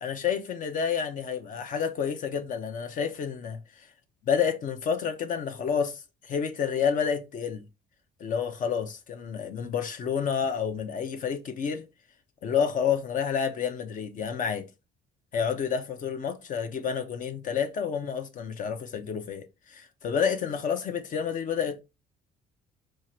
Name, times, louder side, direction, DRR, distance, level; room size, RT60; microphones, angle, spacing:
voice 1, 0.0-3.9 4.3-7.6 8.2-11.9 12.4-14.7 15.3-21.8, left 7 dB, 50° left, 0.9 m, -29 dB
4.7 x 2.5 x 4.3 m
cardioid pair, 110°, 17 cm